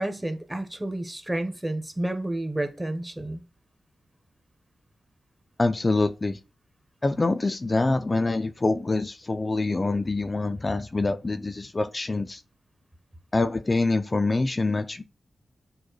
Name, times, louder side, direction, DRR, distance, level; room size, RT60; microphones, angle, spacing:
voice 1, 0.0-3.4, right 1 dB, 15° right, 0.9 m, -30 dB
voice 2, 5.6-6.4 7.0-12.4 13.3-15.0, left 3 dB, 40° left, 0.4 m, -25 dB
6.4 x 2.2 x 3.0 m
supercardioid pair, 40°, 0 cm